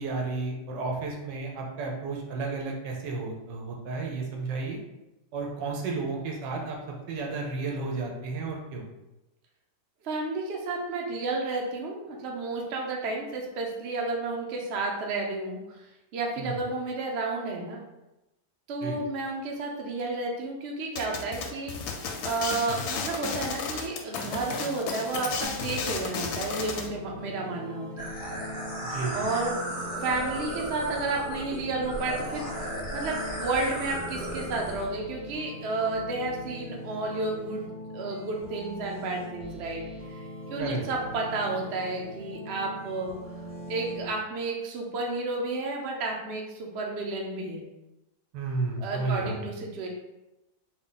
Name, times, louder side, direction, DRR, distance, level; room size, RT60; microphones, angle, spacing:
voice 1, 0.0-4.8 5.3-6.8 7.1-8.8 16.4-16.5 18.8-19.0 28.8-29.3 40.6-40.8 48.3-49.5, right 3 dB, 80° right, 0 dB, 1.4 m, -32 dB
voice 2, 10.0-15.6 16.1-17.8 18.7-28.1 29.1-29.5 30.0-37.6 37.9-39.8 40.1-43.1 43.7-47.6 48.8-49.9, right 3 dB, 60° right, 0 dB, 0.6 m, -31 dB
sound 1, 21.0-26.9, left 5 dB, 70° left, 1.0 m, -33 dB
sound 2, 25.4-44.1, equal, 35° right, 0.9 m, -42 dB
sound 3, 28.0-34.8, equal, 10° left, 0.5 m, -36 dB
3.6 x 2.2 x 3.9 m, 0.96 s
omnidirectional pair, 1.9 m